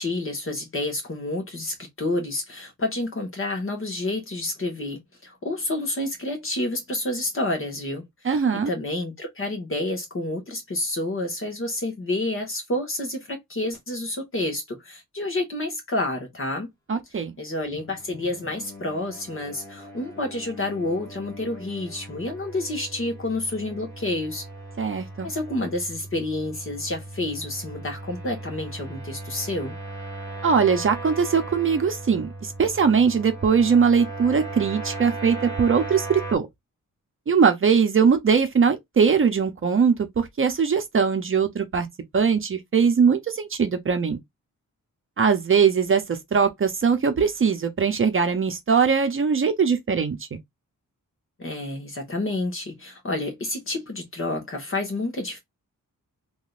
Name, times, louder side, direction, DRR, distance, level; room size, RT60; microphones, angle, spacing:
voice 1, 0.0-16.7 17.4-24.4 25.2-29.7 51.4-55.4, left 2 dB, 40° left, 1.6 m, -29 dB
voice 2, 8.2-8.7 16.9-17.3 24.8-25.3 30.4-36.5 37.3-41.9 42.1-44.2 45.2-50.4, right 6 dB, 40° right, 0.7 m, -21 dB
sound 1, 17.6-36.4, right 2 dB, 10° left, 1.6 m, -38 dB
3.7 x 3.0 x 2.4 m
wide cardioid pair, 155°, 32 cm